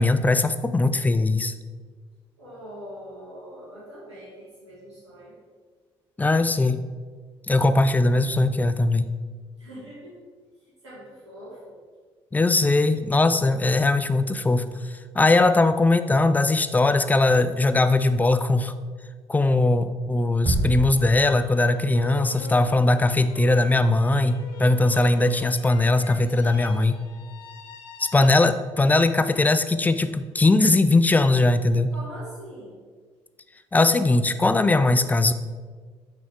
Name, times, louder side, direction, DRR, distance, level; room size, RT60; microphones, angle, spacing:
voice 1, 0.0-1.5 6.2-6.8 7.5-9.1 12.3-14.7 15.2-18.7 19.3-27.0 28.0-31.9 33.7-35.3, left 2 dB, 10° left, 11 dB, 0.3 m, -20 dB
voice 2, 2.4-5.3 9.6-10.1 10.8-11.8 31.9-32.8, equal, 85° right, -8 dB, 1.8 m, -42 dB
sound 1, 20.5-21.9, right 2 dB, 30° right, 1.0 m, -28 dB
sound 2, 20.6-28.8, left 4 dB, 65° left, 0.6 m, -44 dB
6.0 x 4.7 x 3.5 m, 1.5 s
figure-of-eight pair, 45°, 14 cm